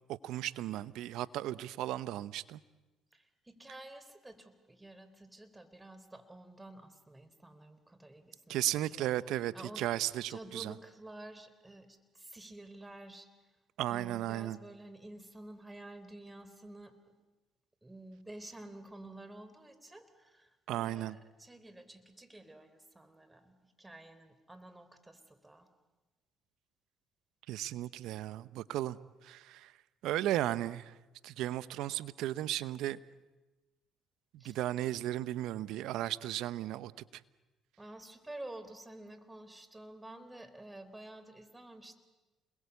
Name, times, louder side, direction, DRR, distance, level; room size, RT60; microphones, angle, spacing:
voice 1, 0.1-2.6 8.5-10.7 13.8-14.6 20.7-21.2 27.5-29.0 29.2-29.7 30.0-30.9 31.2-33.0 34.4-36.9, right 14 dB, 75° right, 17 dB, 0.8 m, -35 dB
voice 2, 3.1-9.1 9.5-9.9 10.3-13.3 13.9-17.0 17.8-25.7 34.4-34.6 37.8-42.0, right 1 dB, 15° right, 11 dB, 3.9 m, -50 dB
29.0 x 21.5 x 8.4 m, 1.1 s
supercardioid pair, 65°, 0 cm